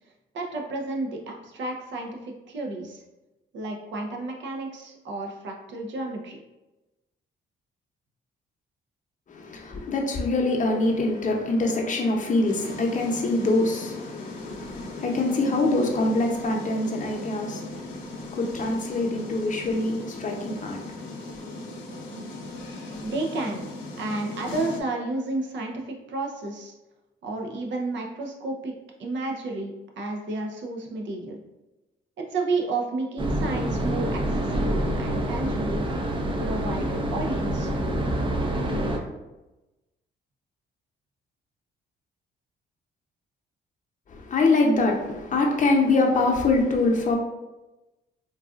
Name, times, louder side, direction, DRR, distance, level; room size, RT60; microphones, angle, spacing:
voice 1, 0.3-3.0 3.5-6.4 23.0-23.7 24.0-26.7 27.2-31.4 32.2-35.8 36.4-37.7, right 2 dB, 70° right, 0.7 m, -31 dB
voice 2, 9.3-21.8 44.1-47.1, left 2 dB, 40° left, 0.7 m, -25 dB
sound 1, 12.5-24.8, left 2 dB, 75° left, 0.8 m, -39 dB
sound 2, 33.2-39.0, right 1 dB, 25° right, 0.5 m, -27 dB
3.9 x 2.4 x 2.4 m
cardioid pair, 90°, 20 cm